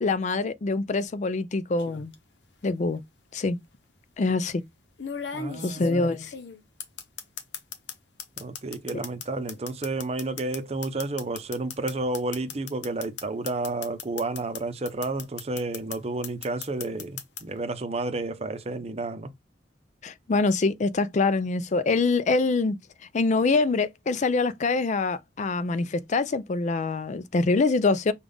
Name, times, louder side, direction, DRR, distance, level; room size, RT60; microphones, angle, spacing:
voice 1, 0.0-2.1 2.6-3.0 3.3-3.6 4.2-4.6 5.6-6.3 8.9-9.0 20.0-22.8 23.1-28.1, left 3 dB, 40° left, 0.4 m, -25 dB
sound 1, 1.8-2.1 3.3-3.4 5.0-14.6 14.9-16.0 16.2-17.4, left 6 dB, 80° left, 0.8 m, -37 dB
voice 2, 5.3-6.2 8.4-19.3, right 2 dB, 35° right, 0.6 m, -31 dB
5.3 x 2.4 x 3.5 m
head